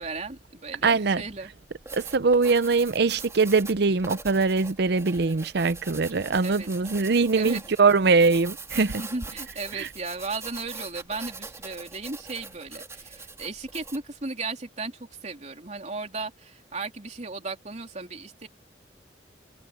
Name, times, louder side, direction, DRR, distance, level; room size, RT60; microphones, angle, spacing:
voice 1, 0.0-1.5 6.4-6.7 7.3-7.6 8.7-18.5, right 3 dB, 40° right, 3.5 m, -35 dB
voice 2, 0.8-1.2 1.9-9.0 9.7-9.9, right 4 dB, 65° right, 0.7 m, -22 dB
Writing, 1.7-14.1, right 3 dB, 15° right, 2.7 m, -42 dB
head